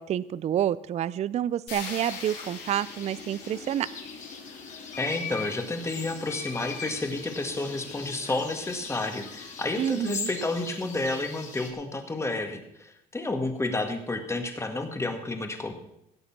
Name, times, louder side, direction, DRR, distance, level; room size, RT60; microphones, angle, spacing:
voice 1, 0.0-3.9 9.8-10.3, right 10 dB, 40° right, 19 dB, 0.4 m, -28 dB
sound 1, 1.7-5.7, left 5 dB, 90° left, 3.8 m, -44 dB
sound 2, 1.8-11.7, left 5 dB, 45° left, 3.3 m, -42 dB
sound 3, 2.2-10.7, left 7 dB, 70° left, 2.2 m, -43 dB
voice 2, 5.0-15.7, left 2 dB, 15° left, 5 dB, 1.9 m, -31 dB
16.5 x 8.0 x 6.0 m, 0.80 s
cardioid pair, 110°, 17 cm